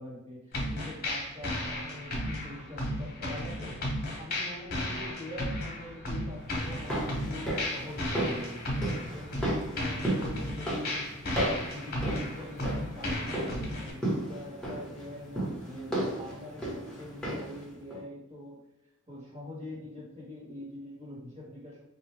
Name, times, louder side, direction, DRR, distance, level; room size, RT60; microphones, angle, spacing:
voice 1, 0.0-11.1 11.5-18.6 19.1-21.8, left 1 dB, 35° right, -5 dB, 1.5 m, -44 dB
sound 1, 0.5-13.9, left 1 dB, 45° left, 1.0 m, -34 dB
sound 2, 6.6-17.6 17.9-18.0, right 1 dB, 5° left, 1.0 m, -34 dB
3.9 x 2.7 x 3.3 m, 0.85 s
head